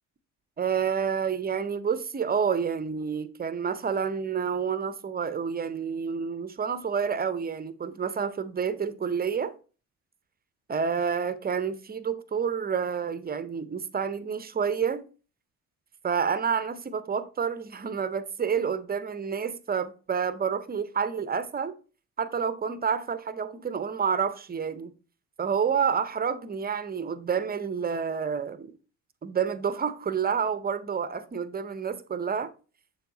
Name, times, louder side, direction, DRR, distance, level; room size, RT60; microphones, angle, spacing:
voice 1, 0.6-9.5 10.7-15.0 16.0-21.7 22.2-24.9 25.4-28.7 29.2-32.5, right 6 dB, 20° right, 0.6 m, -29 dB
6.8 x 3.5 x 3.9 m
hypercardioid pair, 55°, 45 cm